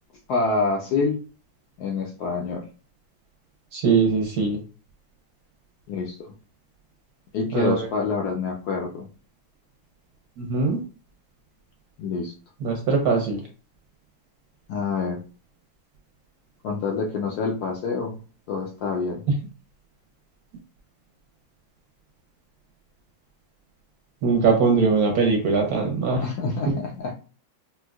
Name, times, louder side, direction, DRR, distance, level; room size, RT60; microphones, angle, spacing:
voice 1, 0.3-1.2 1.8-2.6 5.9-6.3 7.3-9.1 12.0-12.3 14.7-15.2 16.6-18.2 18.5-19.2 26.2-27.1, left 4 dB, 75° left, 0 dB, 0.9 m, -27 dB
voice 2, 3.7-4.6 7.5-7.9 10.4-10.8 12.6-13.4 24.2-26.2, right 4 dB, 70° right, 1 dB, 0.9 m, -21 dB
4.4 x 2.2 x 2.3 m, 0.37 s
omnidirectional pair, 2.1 m